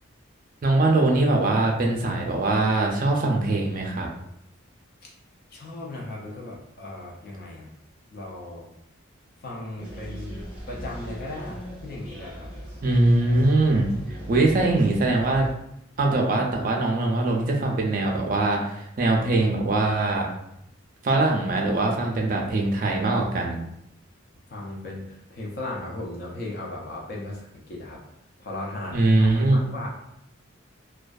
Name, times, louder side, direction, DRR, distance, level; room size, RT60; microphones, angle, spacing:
voice 1, 0.6-4.1 12.8-15.5 16.0-20.3 21.0-23.6 28.9-29.6, right 2 dB, 40° right, 0 dB, 0.4 m, -22 dB
voice 2, 5.5-7.7 8.1-8.7 9.4-12.6 24.5-28.0 28.4-29.9, left 1 dB, 45° left, -3 dB, 0.4 m, -37 dB
sound 1, 9.8-15.5, equal, 20° left, 0.9 m, -39 dB
2.4 x 2.2 x 2.3 m, 0.79 s
head